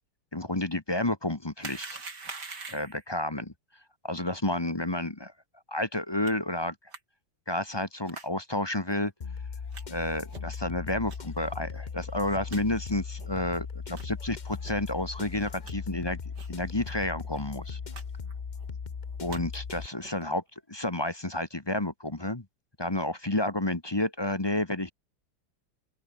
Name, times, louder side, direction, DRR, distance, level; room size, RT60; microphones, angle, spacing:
voice 1, 0.3-2.0 2.7-3.5 4.0-5.3 5.7-6.7 7.5-9.1 9.9-16.2 16.5-17.8 19.2-20.4 20.7-22.4 22.8-24.9, left 1 dB, 15° left, 1.1 m, -30 dB
sound 1, 1.6-3.0 6.3-6.4 6.9-7.0 8.1-8.3 8.9-9.0 9.7-9.8 10.3-10.6 11.1-11.2 11.8-11.9 12.1-12.2 12.5-12.6 13.2-13.3 13.9-14.1 14.6-14.8 15.2-15.7 16.4-16.6 16.8-16.9 17.2-17.4 17.9-18.0 18.3-18.7 19.1-19.4 20.0-20.3, right 4 dB, 50° right, 3.9 m, -44 dB
sound 2, 9.2-19.9, left 5 dB, 55° left, 0.5 m, -38 dB
open air
omnidirectional pair, 2.3 m